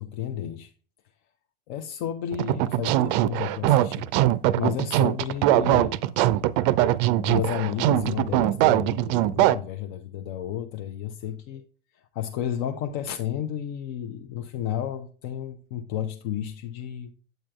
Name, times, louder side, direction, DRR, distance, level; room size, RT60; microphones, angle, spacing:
voice 1, 0.1-0.7 1.7-4.1 4.6-6.0 7.2-11.6 11.9-17.1, left 10 dB, 50° left, 0.6 m, -32 dB
sound 1, 2.3-9.5, right 14 dB, 50° right, 0.4 m, -22 dB
9.0 x 7.3 x 2.3 m
figure-of-eight pair, 80°, 31 cm